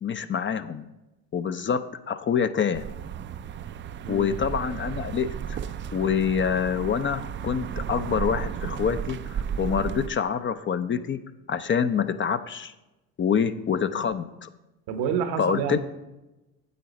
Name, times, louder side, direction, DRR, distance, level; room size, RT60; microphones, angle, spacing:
voice 1, 0.0-0.9 1.3-2.8 4.1-5.6 5.9-11.2 11.5-12.7 13.2-14.5 15.4-15.8, left 7 dB, 30° left, 11 dB, 0.5 m, -26 dB
sound 1, 2.7-10.1, right 8 dB, 30° right, 0.4 m, -34 dB
voice 2, 4.0-4.4 14.9-15.8, right 7 dB, 75° right, 8 dB, 1.1 m, -28 dB
9.4 x 7.6 x 4.1 m, 1.0 s
supercardioid pair, 75°, 39 cm